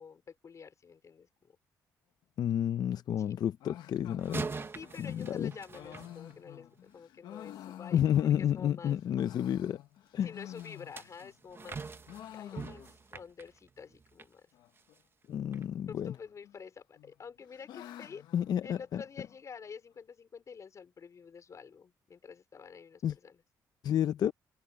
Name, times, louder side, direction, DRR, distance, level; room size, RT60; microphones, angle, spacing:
voice 1, 0.0-1.6 3.2-3.4 4.7-9.0 10.2-11.8 12.3-14.5 15.8-18.2 18.6-23.4, left 6 dB, 45° left, 4.8 m, -49 dB
voice 2, 2.4-4.5 5.0-5.5 7.9-9.8 10.1-10.3 15.3-16.1 18.3-19.0 23.0-23.1 23.8-24.3, left 10 dB, 65° left, 0.7 m, -30 dB
sound 1, 3.6-8.6 9.0-11.4 11.7-13.2 13.5-13.6 13.8-13.9 14.5-15.0 16.0-16.6 17.0-19.4, left 12 dB, 90° left, 1.3 m, -50 dB
sound 2, 4.2-6.8 10.6-14.3 14.8-15.0 15.5-15.6, right 4 dB, 30° right, 1.1 m, -44 dB
open air
cardioid pair, 95°, 7 cm